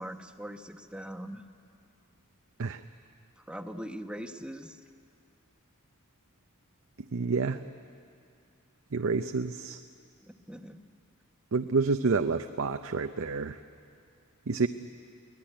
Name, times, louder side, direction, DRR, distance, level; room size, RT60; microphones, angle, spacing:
voice 1, 0.0-1.4 3.4-4.8 10.2-10.8, equal, 5° right, 7 dB, 1.0 m, -41 dB
voice 2, 7.1-7.6 8.9-9.8 11.5-13.6 14.5-14.7, right 4 dB, 65° right, 8 dB, 0.6 m, -28 dB
23.5 x 18.5 x 10.0 m, 2.4 s
head